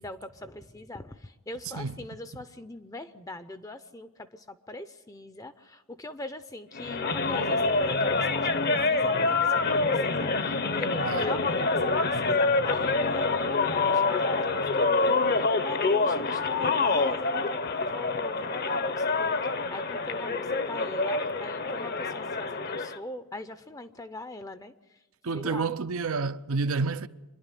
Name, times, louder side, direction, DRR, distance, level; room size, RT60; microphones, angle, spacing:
voice 1, 0.0-19.2 19.4-25.0 25.3-25.7, left 2 dB, 15° left, 0.6 m, -41 dB
sound 1, 6.7-23.0, left 3 dB, 45° left, 0.8 m, -26 dB
voice 2, 25.2-27.1, right 4 dB, 75° right, 0.6 m, -29 dB
26.0 x 11.0 x 9.9 m
head